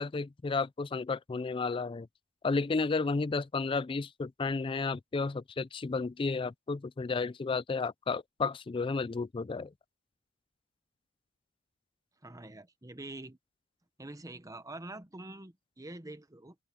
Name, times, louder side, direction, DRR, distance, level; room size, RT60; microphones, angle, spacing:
voice 1, 0.0-2.1 2.4-9.7, left 4 dB, 25° left, 0.3 m, -32 dB
voice 2, 12.2-13.4 14.0-16.6, right 2 dB, 15° right, 1.0 m, -45 dB
open air
head